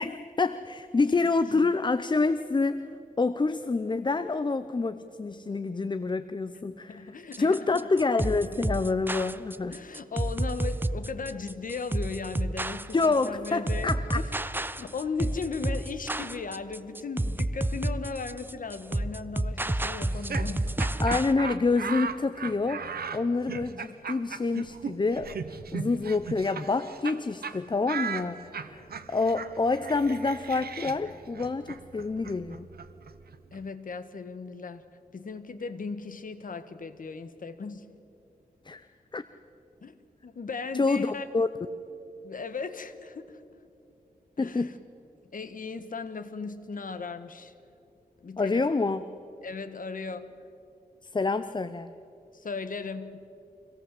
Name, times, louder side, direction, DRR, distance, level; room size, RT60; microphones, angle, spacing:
voice 1, 0.0-2.9 3.2-7.1 7.4-9.8 12.9-14.2 21.0-25.4 25.7-32.7 38.6-38.9 39.1-39.2 40.7-41.1 41.3-41.5 44.4-44.7 48.4-49.0 51.0-51.9, left 3 dB, 30° left, 11 dB, 0.7 m, -27 dB
voice 2, 1.1-1.7 6.9-7.9 9.7-14.2 14.7-20.9 33.5-34.8 35.1-37.9 39.8-39.9 40.2-41.2 42.2-43.5 44.4-44.7 45.3-47.5 48.2-48.7 49.4-50.3 52.3-53.2, left 4 dB, 60° left, 10 dB, 1.6 m, -37 dB
sound 1, 7.3-21.3, right 1 dB, 15° right, 0.7 m, -30 dB
Laughter, 20.0-27.2 27.4-27.6 27.9-33.6, right 6 dB, 80° right, 1.1 m, -37 dB
25.0 x 17.5 x 7.8 m, 2.7 s
wide cardioid pair, 105°, 16 cm